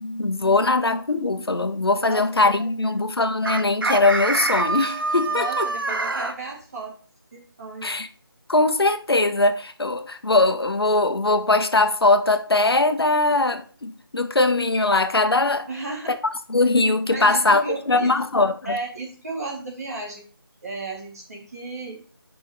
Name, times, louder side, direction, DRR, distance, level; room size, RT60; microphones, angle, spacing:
voice 1, 0.0-5.7 7.8-8.1 8.5-15.7 16.5-18.5, left 2 dB, 90° left, 1.0 m, -21 dB
voice 2, 2.6-2.9 5.3-7.0 7.3-8.0 15.7-16.2 17.1-18.1 18.6-20.3 20.6-22.0, right 3 dB, 40° right, 2.4 m, -34 dB
Chicken rooster, 3.4-6.3, right 3 dB, 65° right, 0.8 m, -25 dB
5.7 x 5.3 x 4.8 m
figure-of-eight pair, 170°, 12 cm